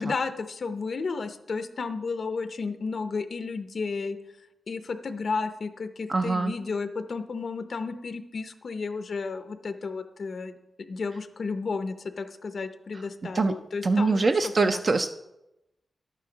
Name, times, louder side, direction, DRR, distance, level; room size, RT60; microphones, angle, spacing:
voice 1, 0.0-4.2 4.7-14.8, left 4 dB, 50° left, 9 dB, 0.5 m, -33 dB
voice 2, 6.1-6.5 13.3-13.5 13.8-15.1, right 3 dB, 40° right, 7 dB, 0.4 m, -23 dB
11.5 x 9.2 x 3.9 m, 0.90 s
wide cardioid pair, 165°, 0 cm